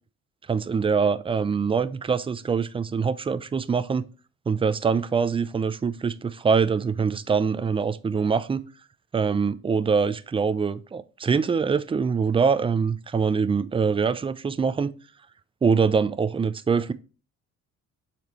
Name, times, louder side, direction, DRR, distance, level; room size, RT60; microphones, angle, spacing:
voice 1, 0.5-4.0 4.5-8.6 9.1-14.9 15.6-16.9, right 5 dB, 20° right, 0.4 m, -24 dB
7.0 x 4.3 x 3.0 m
cardioid pair, 90°, 30 cm